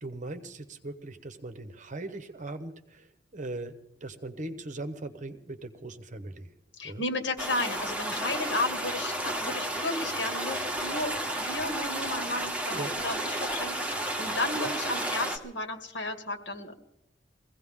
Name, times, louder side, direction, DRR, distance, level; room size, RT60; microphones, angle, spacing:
voice 1, 0.0-3.7 4.0-6.5 6.8-7.0 12.7-12.9 14.5-14.7, right 2 dB, 45° right, 10 dB, 1.0 m, -39 dB
voice 2, 6.8-16.7, left 2 dB, 85° left, 5 dB, 2.2 m, -33 dB
sound 1, 7.4-15.4, right 1 dB, 5° right, 1.8 m, -32 dB
23.0 x 16.0 x 3.7 m, 0.82 s
head